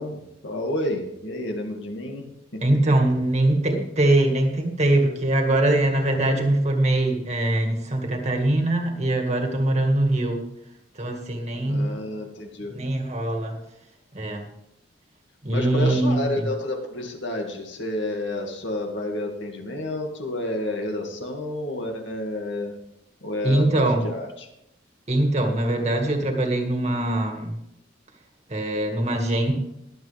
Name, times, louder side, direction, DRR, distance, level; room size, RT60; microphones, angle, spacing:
voice 1, 0.0-2.3 11.6-12.8 15.5-22.7 23.2-24.5, left 1 dB, 70° left, 2 dB, 2.2 m, -30 dB
voice 2, 2.6-10.4 11.0-11.9 12.7-13.6 14.1-14.4 15.4-16.5 23.4-24.1 25.1-27.6 28.5-29.5, right 1 dB, 35° right, 2 dB, 2.0 m, -22 dB
22.0 x 8.1 x 3.5 m, 0.80 s
head